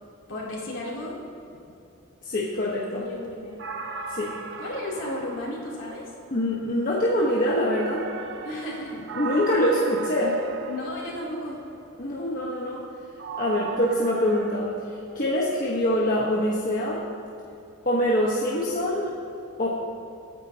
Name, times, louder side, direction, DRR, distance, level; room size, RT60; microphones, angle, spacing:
voice 1, 0.3-1.2 2.9-3.6 4.6-6.1 8.4-8.9 10.6-11.6, left 1 dB, 60° left, -5 dB, 3.5 m, -34 dB
voice 2, 2.2-3.1 4.1-4.4 6.3-8.1 9.1-10.4 12.0-12.8 13.4-14.7 15.1-17.0 17.8-19.1 19.6-19.7, left 1 dB, 40° left, -5 dB, 1.4 m, -24 dB
sound 1, 3.6-6.4 7.7-11.5 13.2-14.5, right 5 dB, 55° right, 0.8 m, -37 dB
23.5 x 9.7 x 3.0 m, 2.8 s
head